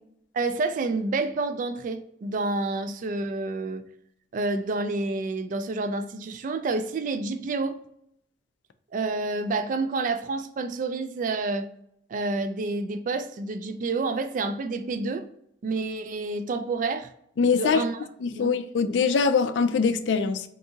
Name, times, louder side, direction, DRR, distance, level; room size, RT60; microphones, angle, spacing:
voice 1, 0.3-3.8 4.3-7.8 8.9-11.7 12.1-15.3 15.6-17.1 17.5-18.0 18.3-18.6, right 3 dB, 45° right, 0.3 m, -29 dB
voice 2, 17.4-17.8 18.2-20.4, left 5 dB, 80° left, 0.4 m, -23 dB
3.5 x 2.6 x 2.7 m
head